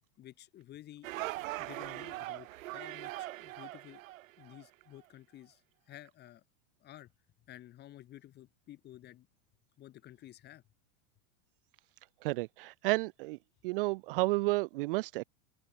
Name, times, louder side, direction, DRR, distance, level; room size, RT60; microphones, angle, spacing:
voice 1, 0.2-1.1 1.6-4.0 4.4-5.6 5.9-6.4 6.8-7.1 7.5-9.3 9.8-10.6, left 13 dB, 25° left, 1.5 m, -52 dB
sound 1, 1.0-4.7, right 17 dB, 70° right, 2.5 m, -41 dB
voice 2, 12.2-13.4 13.6-15.2, right 22 dB, 45° right, 0.4 m, -31 dB
open air
supercardioid pair, 160°, 41 cm